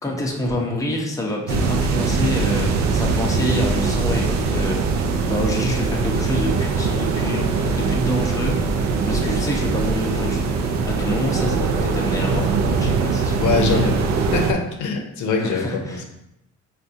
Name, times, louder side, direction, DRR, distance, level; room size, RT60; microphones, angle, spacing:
voice 1, 0.0-8.6 9.1-10.5 10.9-14.0 15.4-16.0, left 1 dB, 10° left, -1 dB, 0.6 m, -27 dB
sound 1, 1.5-14.5, right 4 dB, 65° right, 0.5 m, -21 dB
voice 2, 13.4-14.0 14.3-16.0, left 4 dB, 75° left, 2 dB, 0.6 m, -23 dB
4.5 x 2.2 x 2.6 m, 0.84 s
cardioid pair, 90°, 30 cm